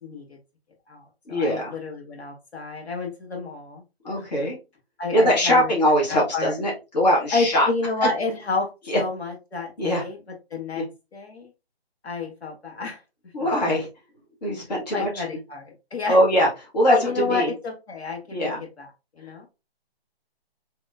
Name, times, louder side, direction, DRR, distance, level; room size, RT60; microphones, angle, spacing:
voice 1, 0.0-0.4 0.9-3.8 5.0-5.7 6.1-6.5 7.3-10.2 10.5-10.8 11.1-11.5 12.0-13.0 13.4-13.8 14.9-16.2 16.9-18.5 18.8-18.9 19.1-19.5, left 3 dB, 85° left, 1 dB, 1.5 m, -29 dB
voice 2, 1.3-1.8 4.0-4.6 5.1-7.7 8.9-9.0 9.8-10.0 10.7-10.8 13.3-13.9 14.4-15.2 16.1-17.5 18.3-18.6, equal, 40° left, -3 dB, 1.3 m, -22 dB
4.3 x 2.9 x 2.4 m, 0.27 s
hypercardioid pair, 175°, 31 cm